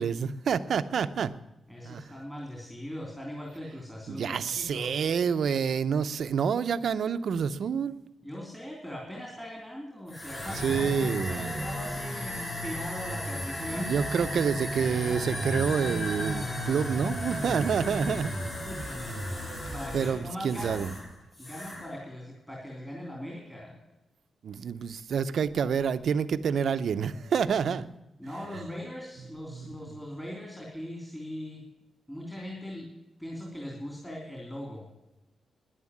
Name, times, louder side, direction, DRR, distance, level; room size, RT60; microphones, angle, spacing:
voice 1, 0.0-1.3 1.8-2.0 4.1-8.0 10.6-11.5 13.7-18.3 19.4-20.9 24.4-27.9 29.5-29.7, right 7 dB, 65° right, 0.7 m, -28 dB
voice 2, 1.7-4.9 8.2-13.9 17.7-18.2 18.6-18.8 19.2-19.4 19.7-20.9 21.4-23.8 28.2-31.6 32.1-32.9 33.2-34.9, left 1 dB, 10° left, 3.0 m, -40 dB
sound 1, 10.1-21.1 21.3-21.9, left 1 dB, 35° left, 6.0 m, -34 dB
11.0 x 10.5 x 9.6 m
wide cardioid pair, 125°, 0 cm